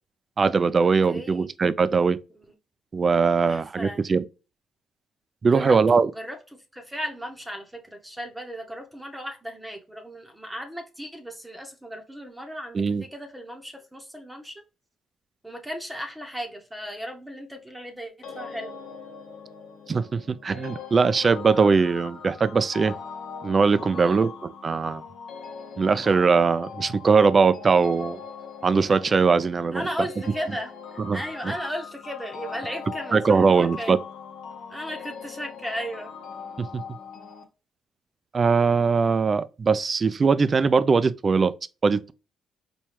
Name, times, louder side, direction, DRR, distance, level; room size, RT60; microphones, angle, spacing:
voice 1, 0.4-2.2 2.9-4.2 5.4-6.1 12.7-13.0 19.9-23.0 23.4-25.0 25.8-28.2 28.6-29.8 31.1-31.2 33.1-34.0 36.6-36.8 38.3-41.5 41.8-42.1, right 5 dB, 35° right, 0.3 m, -21 dB
voice 2, 1.1-1.5 2.4-2.5 3.4-4.0 5.5-6.4 6.7-14.6 15.4-18.8 23.9-24.3 29.7-30.7 31.1-34.0 34.7-36.1, equal, 10° right, 0.8 m, -35 dB
sound 1, 18.2-37.4, left 6 dB, 75° left, 0.8 m, -41 dB
4.3 x 2.3 x 3.1 m
cardioid pair, 90°, 0 cm